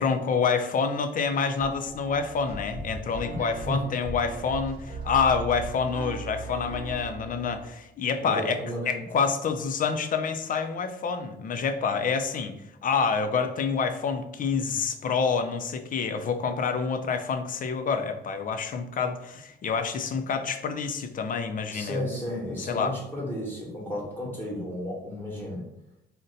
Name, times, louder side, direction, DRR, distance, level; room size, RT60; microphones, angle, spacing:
voice 1, 0.0-8.6 8.9-12.5 12.8-22.0 22.7-23.0, left 5 dB, 45° left, 7 dB, 0.4 m, -27 dB
sound 1, 1.6-7.7, right 3 dB, 50° right, 0.9 m, -38 dB
voice 2, 8.2-9.0 21.7-25.6, left 1 dB, 10° left, -4 dB, 1.0 m, -33 dB
2.6 x 2.1 x 3.8 m, 0.82 s
cardioid pair, 90°, 20 cm